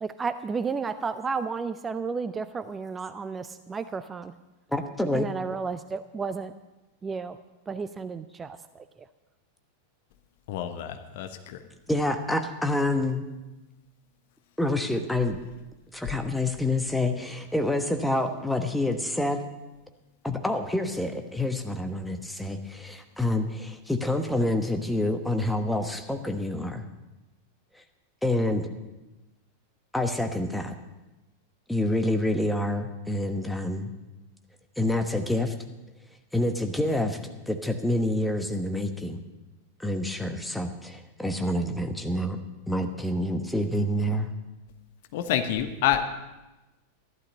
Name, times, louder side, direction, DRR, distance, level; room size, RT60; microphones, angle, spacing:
voice 1, 0.0-4.3 5.1-6.5 7.0-7.4 7.7-9.1, right 5 dB, 15° right, 12 dB, 0.5 m, -32 dB
voice 2, 4.7-5.3 11.9-13.2 14.6-15.4 15.9-19.4 20.2-26.8 28.2-28.7 29.9-30.7 31.7-33.9 34.8-35.5 36.3-37.2 37.5-39.2 39.8-42.4 42.7-44.3, left 1 dB, 5° left, 6 dB, 1.2 m, -27 dB
voice 3, 10.5-11.6 45.1-46.1, left 10 dB, 50° left, 7 dB, 1.2 m, -28 dB
14.0 x 12.0 x 5.3 m, 1.0 s
figure-of-eight pair, 90°, 0 cm